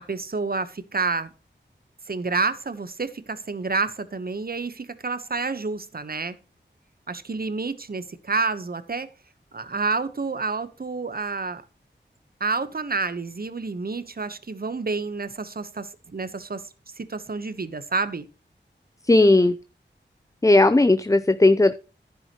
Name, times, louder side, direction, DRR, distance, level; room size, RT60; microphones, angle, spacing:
voice 1, 0.1-1.3 2.1-6.3 7.1-9.1 9.5-11.6 12.4-16.6 17.0-18.3, right 4 dB, 50° right, 13 dB, 1.2 m, -29 dB
voice 2, 19.1-19.6 20.4-21.7, left 2 dB, 15° left, 13 dB, 0.5 m, -16 dB
11.0 x 10.5 x 3.1 m, 0.33 s
wide cardioid pair, 55°, 20 cm